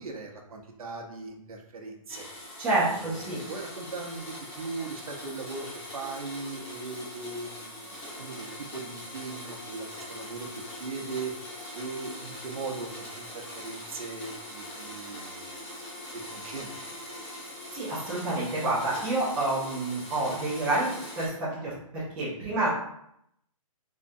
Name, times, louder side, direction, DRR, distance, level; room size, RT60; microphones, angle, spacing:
voice 1, 0.0-2.3 2.9-11.3 11.7-15.7 16.1-17.0, right 4 dB, 80° right, 2 dB, 0.8 m, -39 dB
Domestic sounds home sounds, 2.1-21.3, left 1 dB, 20° left, 1.0 m, -42 dB
voice 2, 2.6-3.4 17.7-20.9 21.2-22.7, right 2 dB, 5° right, -9 dB, 0.4 m, -28 dB
3.6 x 3.1 x 2.6 m, 0.74 s
hypercardioid pair, 175°, 18 cm